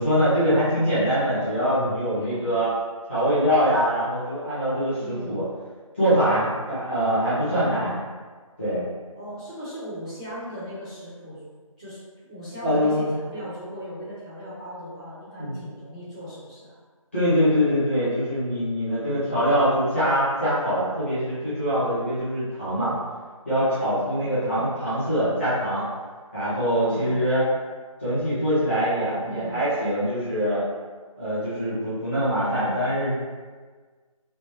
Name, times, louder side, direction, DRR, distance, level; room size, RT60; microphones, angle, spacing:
voice 1, 0.0-2.7 3.1-5.4 6.0-7.9 8.6-8.8 12.6-13.1 15.4-15.6 17.1-22.9 23.4-25.8 26.3-27.4 28.0-30.6 31.2-33.1, equal, 20° left, -13 dB, 1.2 m, -23 dB
voice 2, 2.2-2.6 5.0-5.4 9.1-11.4 11.8-12.0 12.3-16.7 24.1-24.7 26.9-27.2 29.2-29.6, equal, 10° right, -20 dB, 0.6 m, -38 dB
3.3 x 2.7 x 2.9 m, 1.5 s
figure-of-eight pair, 175°, 18 cm